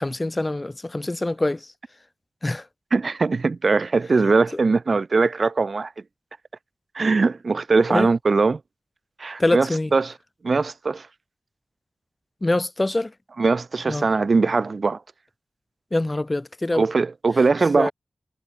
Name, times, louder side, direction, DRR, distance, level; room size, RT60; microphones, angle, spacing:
voice 1, 0.0-1.7 2.4-2.6 7.9-8.1 9.4-9.9 12.4-13.1 13.9-14.1 15.9-16.8 17.8-17.9, left 2 dB, 20° left, 0.9 m, -24 dB
voice 2, 2.9-5.9 6.9-8.6 9.2-10.1 10.4-11.1 13.4-15.0 16.7-17.9, right 4 dB, 50° right, 0.3 m, -21 dB
wide cardioid pair, 115°, 0 cm